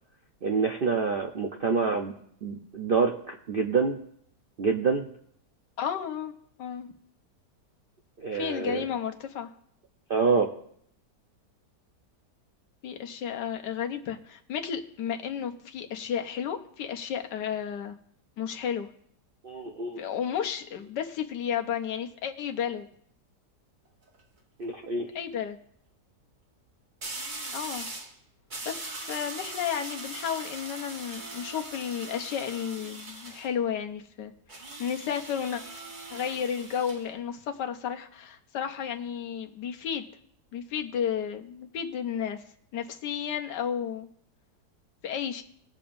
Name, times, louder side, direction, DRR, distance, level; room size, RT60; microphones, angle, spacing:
voice 1, 0.4-2.1 2.4-4.0 4.6-5.1 8.2-8.8 10.1-10.5 19.4-20.0 24.6-25.1, right 4 dB, 60° right, 2 dB, 0.5 m, -27 dB
voice 2, 5.8-6.3 6.6-6.9 8.3-9.5 12.8-18.0 18.4-18.9 20.0-22.9 25.1-25.6 27.5-27.9 28.6-34.3 34.8-35.6 36.1-40.0 40.5-42.4 42.7-44.1 45.0-45.4, left 8 dB, 80° left, 5 dB, 1.5 m, -32 dB
sound 1, 23.9-24.2 27.0-28.1 28.5-33.5 34.5-37.0, right 2 dB, 30° right, 1.2 m, -40 dB
20.5 x 7.0 x 2.6 m, 0.67 s
omnidirectional pair, 1.8 m